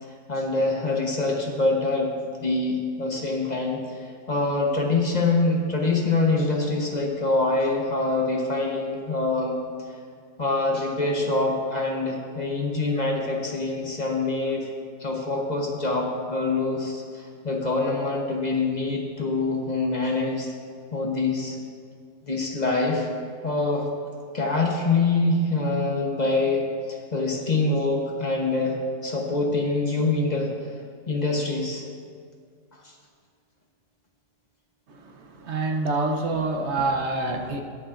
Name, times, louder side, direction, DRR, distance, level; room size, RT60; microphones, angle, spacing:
voice 1, 0.0-9.6 10.4-14.7 15.0-20.5 20.9-21.6 22.2-23.1 23.4-23.9 24.3-30.5 31.1-31.8 32.8-32.9, left 3 dB, 35° left, 0 dB, 1.0 m, -25 dB
voice 2, 35.0-37.6, right 2 dB, 65° right, 4 dB, 1.1 m, -26 dB
20.5 x 7.0 x 2.5 m, 2.2 s
omnidirectional pair, 1.3 m